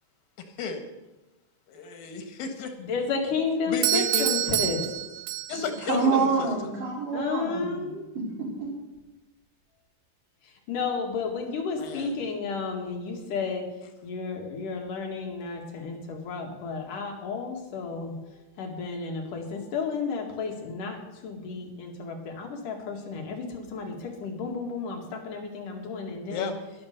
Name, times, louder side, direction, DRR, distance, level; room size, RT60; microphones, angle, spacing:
voice 1, 1.7-2.9 3.7-4.3 5.5-6.5 11.8-12.1 26.3-26.6, left 4 dB, 90° left, 6 dB, 3.3 m, -33 dB
voice 2, 2.8-5.0 7.1-8.1 10.4-13.7 14.0-26.5, left 4 dB, 70° left, 1 dB, 3.5 m, -32 dB
Doorbell, 3.8-5.8, right 14 dB, 85° right, 1.6 m, -27 dB
voice 3, 5.9-7.8 8.2-8.7, right 4 dB, 65° right, -3 dB, 5.6 m, -26 dB
12.0 x 11.5 x 6.7 m, 1.0 s
omnidirectional pair, 3.9 m